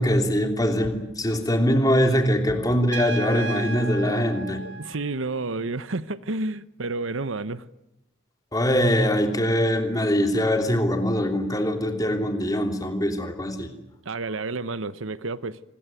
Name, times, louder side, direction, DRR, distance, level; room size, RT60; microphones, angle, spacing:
voice 1, 0.0-4.6 8.5-13.7, equal, 20° left, 3.1 m, -22 dB
Trumpet, 2.9-5.5, right 2 dB, 55° right, 1.8 m, -35 dB
voice 2, 4.6-7.7 14.0-15.6, right 3 dB, 75° right, 0.9 m, -30 dB
27.0 x 21.0 x 9.1 m
head